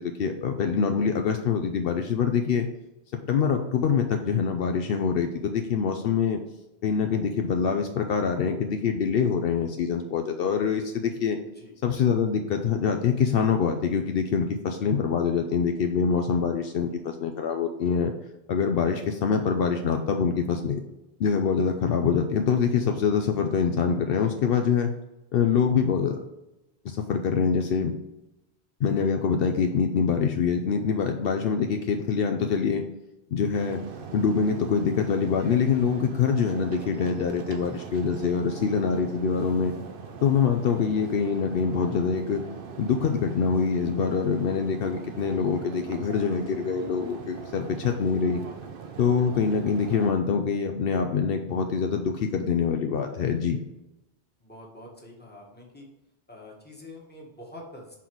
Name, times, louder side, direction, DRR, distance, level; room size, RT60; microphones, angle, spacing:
voice 1, 0.0-2.7 3.3-6.4 6.8-11.4 11.8-18.1 18.5-20.8 21.2-24.9 25.3-26.2 26.8-27.9 28.8-32.8 33.3-33.8 34.1-39.7 40.2-42.4 42.8-48.4 49.0-53.6, left 6 dB, 70° left, 5 dB, 0.7 m, -25 dB
sound 1, 33.5-50.1, right 6 dB, 65° right, 0.8 m, -41 dB
voice 2, 54.4-55.9 56.3-58.0, left 1 dB, 10° left, -2 dB, 1.3 m, -46 dB
5.8 x 3.9 x 4.5 m, 0.96 s
omnidirectional pair, 1.0 m